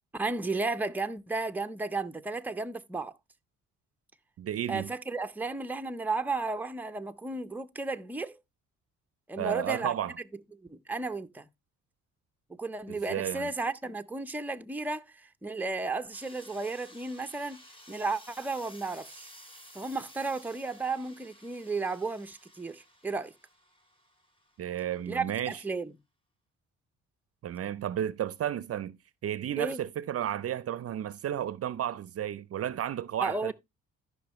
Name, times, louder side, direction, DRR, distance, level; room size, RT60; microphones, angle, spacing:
voice 1, 0.1-3.1 4.7-8.4 9.3-9.9 10.7-11.5 12.6-17.6 17.9-19.3 19.7-23.3 25.1-25.9 29.6-29.8 33.2-33.5, right 3 dB, 5° right, 0.6 m, -33 dB
voice 2, 4.4-4.9 9.4-10.1 12.9-13.5 24.6-25.6 27.4-29.0 29.2-33.5, right 10 dB, 50° right, 0.5 m, -33 dB
sound 1, 16.1-24.7, equal, 15° left, 2.7 m, -54 dB
13.5 x 5.6 x 3.0 m
cardioid pair, 90°, 30 cm